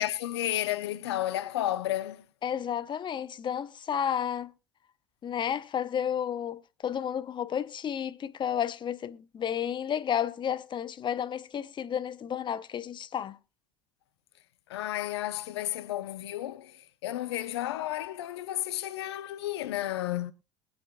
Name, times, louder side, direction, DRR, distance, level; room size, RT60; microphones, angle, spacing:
voice 1, 0.0-2.2 14.7-16.8 17.0-20.3, left 13 dB, 85° left, 0.7 m, -32 dB
voice 2, 2.4-4.5 5.2-13.4, left 9 dB, 35° left, 0.7 m, -32 dB
21.5 x 7.8 x 2.3 m
hypercardioid pair, 70°, 13 cm